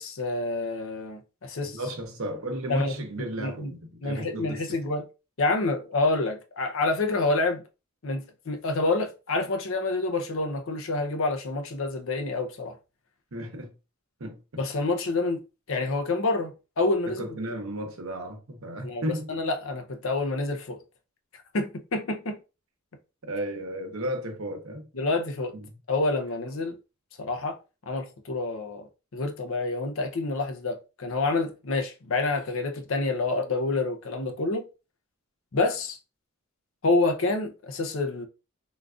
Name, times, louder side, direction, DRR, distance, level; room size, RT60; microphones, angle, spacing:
voice 1, 0.0-1.8 2.7-2.9 3.2-3.7 4.0-5.0 5.4-7.6 8.0-12.7 14.6-15.4 15.7-17.3 18.8-19.0 19.3-20.8 21.5-22.4 24.9-25.5 25.9-26.8 27.2-27.6 27.9-28.9 29.1-34.6 35.5-36.0 36.8-38.3, left 3 dB, 65° left, 0.6 m, -28 dB
voice 2, 1.6-4.8 13.3-13.7 14.2-14.7 17.1-19.3 23.2-24.9 25.5-25.8, right 1 dB, 70° right, 0.8 m, -34 dB
3.7 x 2.4 x 2.4 m
head